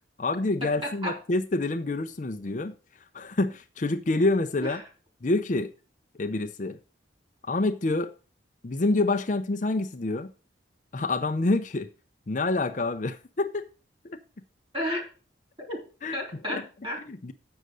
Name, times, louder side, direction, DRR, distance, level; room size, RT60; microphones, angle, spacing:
voice 1, 0.2-2.7 3.1-4.8 5.2-5.7 6.2-6.8 7.4-8.1 8.6-10.3 10.9-11.9 12.3-13.7 14.1-14.2 16.0-16.2 16.5-16.6 17.0-17.3, left 2 dB, 40° left, 0.6 m, -27 dB
voice 2, 0.8-1.1 4.6-4.8 14.7-15.1 15.7-15.8 16.1-17.0, equal, 25° right, 3.2 m, -32 dB
7.9 x 6.6 x 6.2 m
head